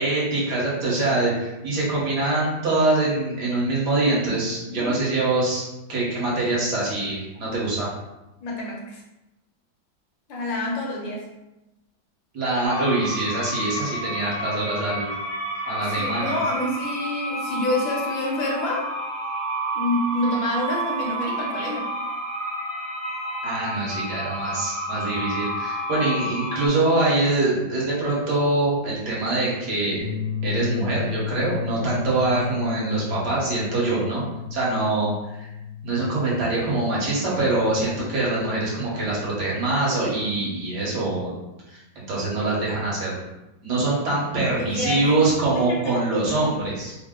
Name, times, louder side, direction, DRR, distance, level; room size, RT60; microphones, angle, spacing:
voice 1, 0.0-7.9 12.3-15.1 15.7-16.3 23.4-30.0 30.4-35.1 35.4-35.5 35.8-41.4 41.7-41.8 42.1-43.2 43.6-47.0, right 2 dB, 60° right, -6 dB, 1.5 m, -24 dB
voice 2, 4.7-5.1 8.4-9.0 10.3-11.3 15.8-18.9 19.7-21.9 38.0-38.3 44.4-46.0, left 1 dB, 75° left, -2 dB, 1.6 m, -28 dB
sound 1, 12.6-26.7, right 1 dB, 50° left, 0.9 m, -30 dB
sound 2, 30.0-36.6, left 7 dB, 85° right, 1.5 m, -32 dB
3.9 x 2.0 x 3.6 m, 0.96 s
omnidirectional pair, 2.1 m